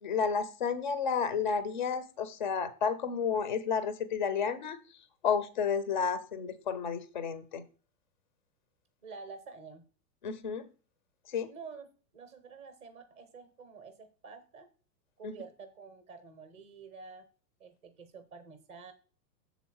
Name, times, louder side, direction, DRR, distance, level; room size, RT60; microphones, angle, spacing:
voice 1, 0.0-4.8 5.2-7.6 10.2-10.7 11.3-11.5 15.2-15.3, left 6 dB, 35° left, 13 dB, 0.4 m, -31 dB
voice 2, 9.0-9.8 11.5-11.9 12.1-14.7 15.2-17.3 17.6-18.9, right 5 dB, 15° right, 9 dB, 0.5 m, -49 dB
7.0 x 4.0 x 6.0 m, 0.37 s
supercardioid pair, 170°, 50 cm